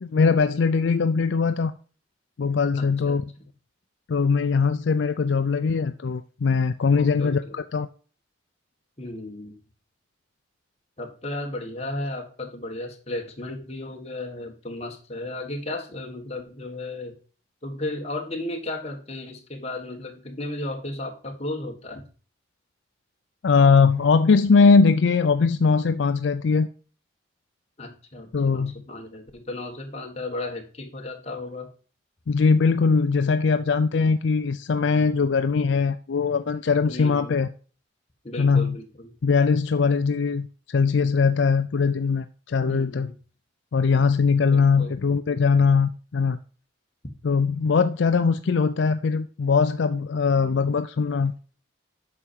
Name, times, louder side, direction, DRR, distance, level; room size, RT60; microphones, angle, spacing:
voice 1, 0.0-1.7 2.4-3.2 4.1-7.9 23.4-26.7 28.3-28.7 32.3-37.5 38.4-38.8 39.2-43.1 43.7-46.4 47.2-51.3, left 5 dB, 70° left, 0.4 m, -21 dB
voice 2, 2.7-3.5 6.9-7.6 9.0-9.6 11.0-17.1 17.6-22.0 27.8-31.7 36.9-37.4 38.2-39.1 42.6-43.2 44.5-45.0, left 2 dB, 30° left, 1.7 m, -34 dB
8.5 x 5.8 x 4.5 m
head